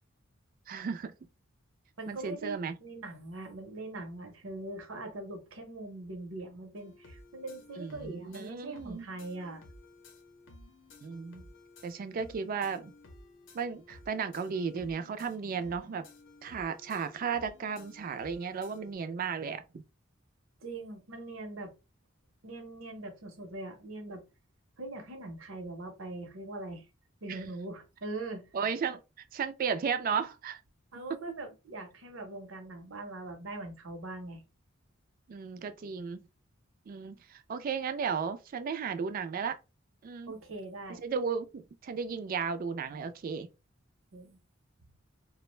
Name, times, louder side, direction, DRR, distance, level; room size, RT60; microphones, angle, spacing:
voice 1, 0.7-1.1 2.1-2.7 7.8-9.1 11.0-11.4 11.8-12.9 13.5-16.1 16.4-19.6 27.3-27.4 28.5-29.0 29.3-30.6 31.1-31.2 35.3-36.2 36.9-39.6 40.0-40.3 41.0-43.5, right 6 dB, 45° right, 0.3 m, -34 dB
voice 2, 2.0-9.6 20.6-21.7 22.4-24.2 24.8-26.8 27.2-28.5 30.9-34.4 40.3-41.0 44.1-44.4, right 2 dB, 80° right, 0.7 m, -42 dB
sound 1, 6.8-19.0, left 2 dB, 65° left, 0.6 m, -55 dB
2.4 x 2.1 x 3.0 m
head